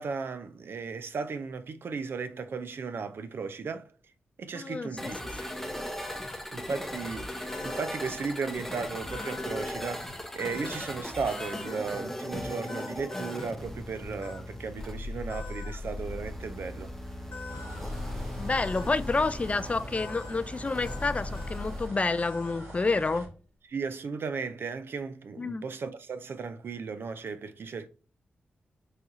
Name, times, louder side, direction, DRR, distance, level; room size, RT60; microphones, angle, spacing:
voice 1, 0.0-3.8 4.4-5.5 6.5-16.9 23.7-27.9, right 5 dB, 65° right, 0.4 m, -36 dB
voice 2, 4.5-5.1 18.4-23.3 25.4-25.6, left 3 dB, 35° left, 0.3 m, -29 dB
sound 1, 5.0-21.9, left 1 dB, 5° left, 0.7 m, -38 dB
sound 2, 6.0-6.4 7.5-8.0 9.1-9.7 10.4-10.9 11.4-11.8 12.7-13.5 14.2-14.4 15.3-15.8 17.3-17.8 18.5-18.9 19.9-20.4 20.8-21.1 21.3-21.7 22.2-22.7, left 5 dB, 70° left, 0.7 m, -44 dB
sound 3, 17.5-23.3, right 1 dB, 85° right, 1.2 m, -44 dB
4.2 x 2.4 x 2.5 m
cardioid pair, 55°, 4 cm